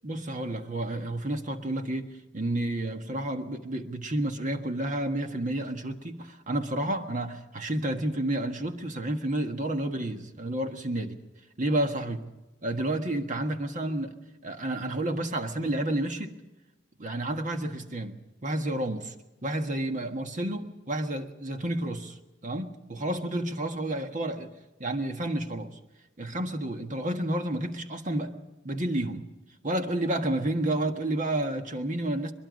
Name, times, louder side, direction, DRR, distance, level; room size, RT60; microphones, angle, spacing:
voice 1, 0.0-11.2 11.6-12.2 12.6-14.1 14.4-16.4 17.0-19.1 19.4-22.2 22.4-24.5 24.8-25.8 26.2-28.4 28.6-29.3 29.6-32.3, right 1 dB, 45° right, 1.5 m, -30 dB
22.5 x 22.5 x 5.2 m
head